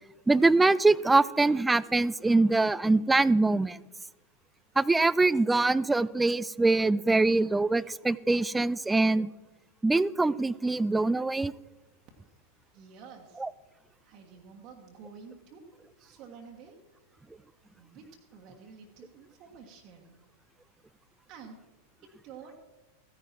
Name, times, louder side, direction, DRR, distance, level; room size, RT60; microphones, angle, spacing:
voice 1, 0.3-3.8 4.8-9.3 9.8-11.5 13.4-13.5, right 2 dB, 10° right, 20 dB, 0.3 m, -24 dB
voice 2, 12.7-13.4 14.0-15.6 16.0-16.8 17.7-18.1 18.3-20.2 21.3-21.6 22.0-22.6, right 6 dB, 40° right, 0 dB, 1.6 m, -50 dB
15.5 x 10.5 x 4.4 m, 1.2 s
figure-of-eight pair, 90°, 0 cm